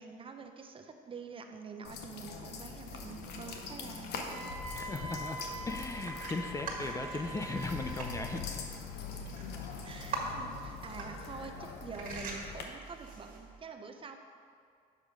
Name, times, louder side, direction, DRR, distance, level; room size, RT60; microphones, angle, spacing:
voice 1, 0.0-4.5 9.8-14.2, right 5 dB, 30° right, 5 dB, 0.7 m, -46 dB
sound 1, 1.8-12.6, left 5 dB, 80° left, 0.9 m, -43 dB
sound 2, 2.5-13.6, right 3 dB, 55° right, 1.7 m, -45 dB
Wind instrument woodwind instrument, 4.3-8.4, right 1 dB, 85° right, 1.5 m, -44 dB
voice 2, 4.7-8.7, left 3 dB, 20° left, 5 dB, 0.5 m, -38 dB
7.4 x 6.0 x 5.1 m, 2.2 s
cardioid pair, 110°, 17 cm